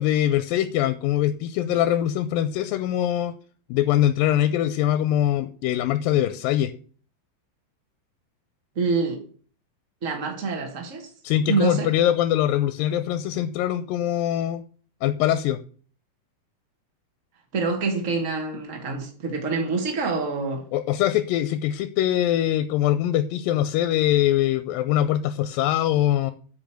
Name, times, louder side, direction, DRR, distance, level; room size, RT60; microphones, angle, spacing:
voice 1, 0.0-3.3 3.7-6.7 11.2-14.6 15.0-15.6 20.7-26.3, left 12 dB, 80° left, 2.3 m, -23 dB
voice 2, 8.7-9.2 10.0-11.1 11.5-11.9 17.5-20.6, right 4 dB, 45° right, 1.0 m, -26 dB
9.1 x 5.3 x 7.7 m
omnidirectional pair, 4.2 m